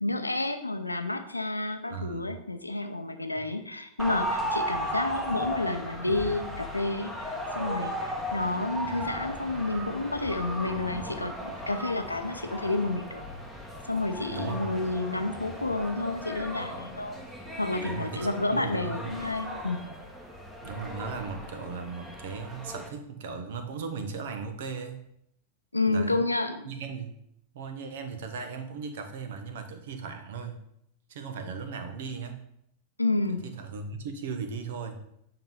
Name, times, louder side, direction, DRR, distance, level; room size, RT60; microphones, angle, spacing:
voice 1, 0.0-13.2 13.9-17.2 17.6-19.9 25.7-26.7 33.0-33.5, left 2 dB, 85° left, 7 dB, 0.7 m, -30 dB
voice 2, 1.9-2.3 14.3-14.7 17.8-19.1 20.6-25.0 25.9-26.2 26.6-27.1 27.5-30.6 31.1-32.4 33.4-35.0, right 5 dB, 55° right, 8 dB, 1.1 m, -37 dB
sound 1, 4.0-22.9, equal, 10° right, 1.3 m, -36 dB
9.0 x 3.9 x 5.4 m, 0.76 s
figure-of-eight pair, 90°, 0 cm